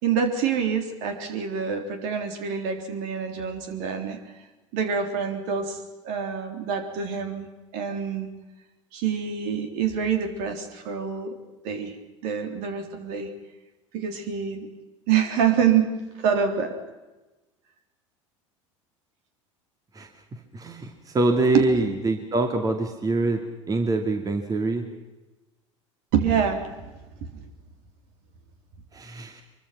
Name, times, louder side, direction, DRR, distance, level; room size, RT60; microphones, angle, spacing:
voice 1, 0.0-4.2 4.7-7.5 7.7-8.3 8.9-11.4 11.6-11.9 12.2-13.3 13.9-14.7 15.1-15.9 16.2-16.8 21.5-21.6 26.1-26.7 27.2-27.3, right 7 dB, 50° right, 6 dB, 3.6 m, -26 dB
voice 2, 20.5-24.8 28.9-29.4, right 2 dB, 20° right, 6 dB, 2.4 m, -25 dB
25.0 x 23.5 x 6.0 m, 1.1 s
figure-of-eight pair, 75°, 16 cm